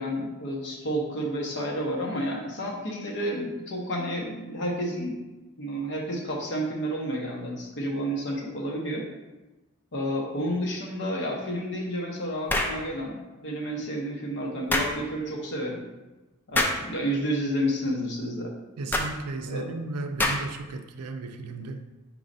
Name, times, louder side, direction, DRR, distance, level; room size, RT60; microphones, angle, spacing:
voice 1, 0.0-5.3 5.6-9.1 9.9-15.8 16.5-18.5 19.5-19.7, equal, 55° left, -1 dB, 0.9 m, -30 dB
sound 1, 12.5-12.8 14.7-14.9 16.5-16.8 18.9-19.1 20.2-20.6, left 1 dB, 10° left, 0.3 m, -25 dB
voice 2, 18.8-21.8, right 3 dB, 90° right, 6 dB, 0.4 m, -35 dB
4.7 x 4.1 x 2.6 m, 1.1 s
head